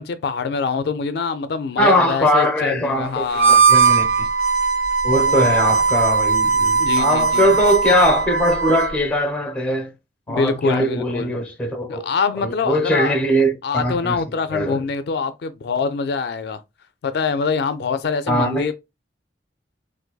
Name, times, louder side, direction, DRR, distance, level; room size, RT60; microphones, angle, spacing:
voice 1, 0.0-3.6 5.3-5.4 6.8-7.5 10.3-11.3 11.9-13.1 13.6-16.6 17.0-18.7, left 5 dB, 65° left, 0.3 m, -24 dB
voice 2, 1.8-4.3 5.0-9.9 10.3-12.0 12.4-14.2 14.5-14.8 18.3-18.7, equal, 5° left, 0.6 m, -20 dB
Harmonica, 3.3-9.0, right 5 dB, 55° right, 0.6 m, -18 dB
3.9 x 2.5 x 2.2 m
head